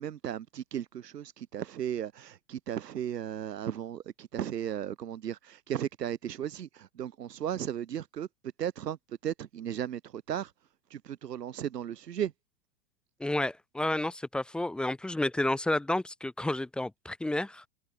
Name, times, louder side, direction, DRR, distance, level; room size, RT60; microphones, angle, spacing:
voice 1, 0.0-8.3 8.6-10.5 10.9-12.3, right 10 dB, 90° right, 3.6 m, -35 dB
voice 2, 13.2-17.7, left 1 dB, ahead, 0.5 m, -31 dB
hypercardioid pair, 135°, 47 cm